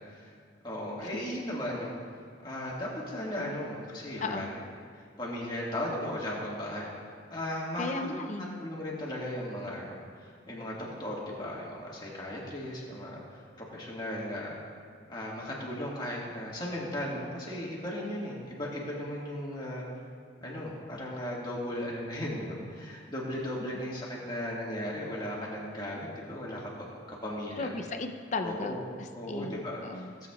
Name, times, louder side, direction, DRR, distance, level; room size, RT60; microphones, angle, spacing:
voice 1, 0.6-1.9 2.4-4.5 5.0-6.9 7.3-13.4 13.7-14.6 15.1-19.8 20.4-27.7 28.4-28.8 29.1-30.1, left 1 dB, 25° left, -5 dB, 1.7 m, -36 dB
voice 2, 4.2-4.5 7.8-8.6 27.6-30.1, left 3 dB, 40° left, 6 dB, 0.5 m, -36 dB
17.0 x 8.0 x 2.4 m, 2.2 s
head